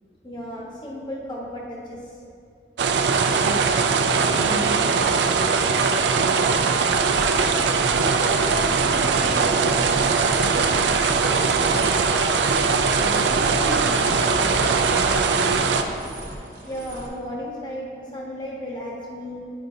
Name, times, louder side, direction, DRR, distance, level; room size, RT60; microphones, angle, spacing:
voice 1, 0.2-2.1 7.9-9.7 16.6-19.5, equal, 25° left, -4 dB, 1.0 m, -34 dB
sound 1, 2.8-15.8, right 5 dB, 70° right, 0.4 m, -21 dB
voice 2, 3.4-6.9 11.3-15.8, equal, 65° left, -2 dB, 0.8 m, -36 dB
sound 2, 7.1-17.1, right 1 dB, 45° right, 1.1 m, -33 dB
9.7 x 5.1 x 2.7 m, 2.3 s
head